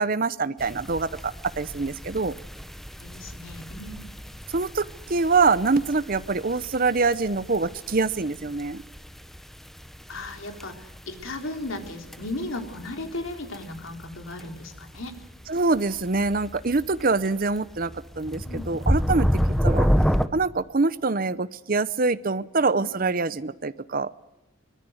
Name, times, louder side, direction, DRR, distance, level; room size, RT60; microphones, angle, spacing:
voice 1, 0.0-2.3 4.5-8.8 15.5-17.9 18.2-19.3 19.6-19.9 20.3-24.1, right 3 dB, 45° right, 15 dB, 0.8 m, -24 dB
sound 1, 0.6-20.3, equal, ahead, 0.9 m, -30 dB
voice 2, 3.0-4.0 10.1-15.2 18.4-18.7 22.7-22.9, left 2 dB, 75° left, 5 dB, 3.7 m, -36 dB
24.0 x 21.0 x 7.9 m, 0.94 s
head